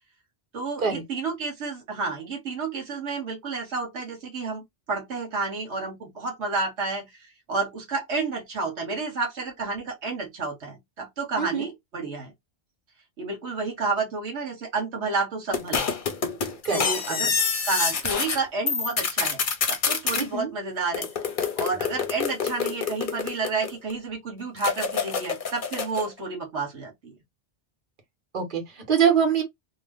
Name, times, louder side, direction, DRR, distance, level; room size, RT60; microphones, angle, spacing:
voice 1, 0.5-12.3 13.2-15.9 16.7-17.3 17.6-19.4 19.7-21.1 21.6-27.1, right 4 dB, 75° right, 1.2 m, -30 dB
voice 2, 11.4-11.7 16.6-17.3 20.1-20.5 28.3-29.4, right 7 dB, 50° right, 1.2 m, -24 dB
sound 1, 15.5-18.4 18.7-20.2 20.9-23.9 24.6-26.1, left 6 dB, 50° left, 0.8 m, -27 dB
2.8 x 2.1 x 3.5 m
omnidirectional pair, 1.2 m